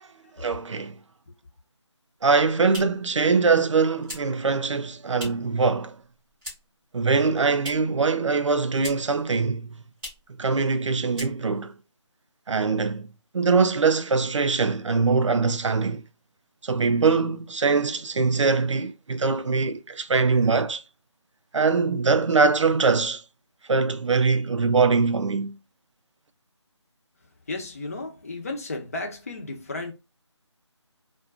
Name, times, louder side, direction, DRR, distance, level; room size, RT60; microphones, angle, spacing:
voice 1, 0.4-1.0 2.2-6.0 6.9-9.8 10.4-11.7 12.5-13.1 13.3-16.0 16.6-20.8 21.5-23.2 23.7-25.6, right 4 dB, 75° right, 0.5 m, -22 dB
sound 1, 2.1-5.6 5.9-6.9 7.1-8.0 8.3-9.2 9.5-9.6 9.9-10.3 10.7-10.8 11.1-11.7, left 1 dB, 5° right, 0.9 m, -41 dB
voice 2, 27.5-29.9, left 2 dB, 30° left, 0.6 m, -34 dB
2.5 x 2.2 x 2.4 m
figure-of-eight pair, 170°, 16 cm